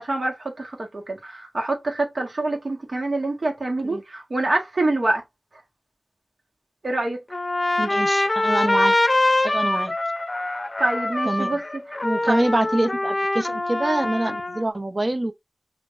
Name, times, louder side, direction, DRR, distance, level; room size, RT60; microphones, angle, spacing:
voice 1, 0.0-5.2 6.8-7.2 10.8-12.0 12.2-12.4, right 2 dB, 65° right, 1.6 m, -26 dB
Trumpet, 7.3-14.6, left 2 dB, 40° left, 0.6 m, -24 dB
voice 2, 7.8-8.9 9.4-9.9 11.3-11.5 12.0-15.3, right 1 dB, 45° right, 0.9 m, -25 dB
5.1 x 2.7 x 2.6 m
cardioid pair, 45°, 0 cm